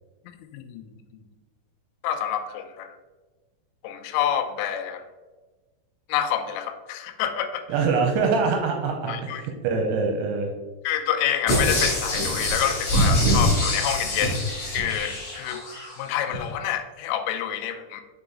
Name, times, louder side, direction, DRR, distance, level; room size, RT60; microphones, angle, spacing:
voice 1, 0.5-1.2 2.0-3.0 3.8-5.0 6.1-7.6 9.1-9.4 10.8-14.4 14.7-15.6 16.0-18.0, left 10 dB, 85° left, 7 dB, 2.9 m, -28 dB
voice 2, 7.7-10.5, right 4 dB, 80° right, 2 dB, 2.5 m, -24 dB
sound 1, 11.5-15.9 16.3-16.4, equal, 45° left, 1.8 m, -24 dB
7.0 x 3.9 x 3.6 m, 1.2 s
omnidirectional pair, 5.1 m